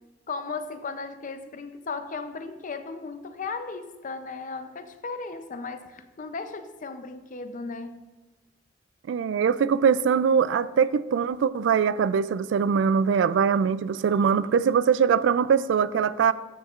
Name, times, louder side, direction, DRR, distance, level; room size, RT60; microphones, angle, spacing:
voice 1, 0.3-8.0, left 4 dB, 45° left, 9 dB, 0.5 m, -36 dB
voice 2, 9.1-16.3, right 6 dB, 75° right, 16 dB, 0.3 m, -22 dB
14.0 x 6.3 x 2.4 m, 1.2 s
head